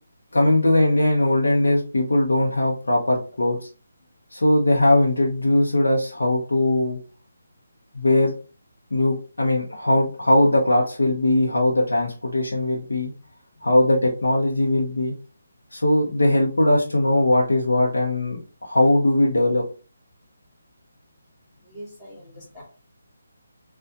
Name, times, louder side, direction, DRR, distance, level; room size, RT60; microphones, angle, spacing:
voice 1, 0.3-3.6 4.3-7.0 7.9-8.3 8.9-13.1 13.6-15.1 15.7-19.6, left 1 dB, 70° left, -2 dB, 1.0 m, -20 dB
voice 2, 21.6-22.6, equal, 30° left, -6 dB, 2.0 m, -43 dB
6.5 x 2.5 x 2.6 m, 0.36 s
figure-of-eight pair, 150°, 0 cm